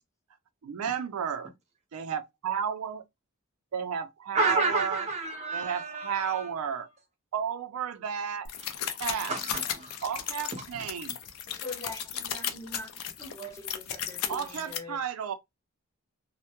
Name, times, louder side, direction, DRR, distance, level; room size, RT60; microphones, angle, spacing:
voice 1, 0.7-1.5 1.9-3.0 3.7-5.1 5.5-6.9 7.3-8.5 8.9-9.3 10.0-11.2 14.3-15.3, right 7 dB, 85° right, 0.4 m, -32 dB
voice 2, 4.3-6.5 9.3-10.0 10.5-10.9, right 3 dB, 30° right, 0.7 m, -30 dB
sound 1, 8.5-14.8, left 9 dB, 85° left, 0.4 m, -35 dB
voice 3, 11.5-12.9 13.2-15.0, left 1 dB, 15° left, 0.8 m, -43 dB
2.1 x 2.0 x 2.8 m
head